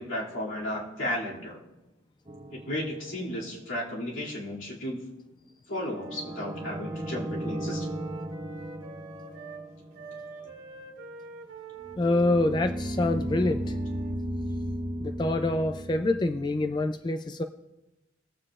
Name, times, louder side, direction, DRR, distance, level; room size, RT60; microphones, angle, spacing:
voice 1, 0.0-1.6 2.5-5.0 5.7-8.0, left 1 dB, 90° left, -5 dB, 2.5 m, -34 dB
sound 1, 2.3-3.7 6.0-10.4 11.8-16.8, right 1 dB, 25° right, 0.6 m, -36 dB
Wind instrument woodwind instrument, 5.7-9.6 9.9-14.2, right 2 dB, 90° right, 1.6 m, -46 dB
voice 2, 12.0-13.8 15.0-17.4, left 2 dB, 20° left, 7 dB, 0.3 m, -26 dB
21.0 x 7.5 x 2.4 m, 1.0 s
head